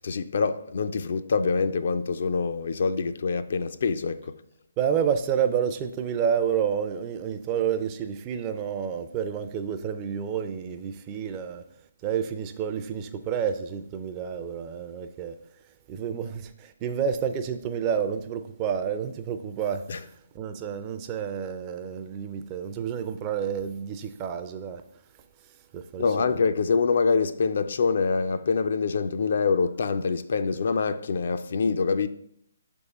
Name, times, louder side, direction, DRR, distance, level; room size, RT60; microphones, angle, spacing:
voice 1, 0.0-4.4 19.9-20.0 26.0-32.1, left 5 dB, 55° left, 0.4 m, -25 dB
voice 2, 4.8-11.6 12.0-15.4 15.9-20.1 20.3-24.8 25.7-26.4, right 8 dB, 25° right, 0.4 m, -29 dB
6.5 x 3.5 x 4.1 m
figure-of-eight pair, 140°, 0 cm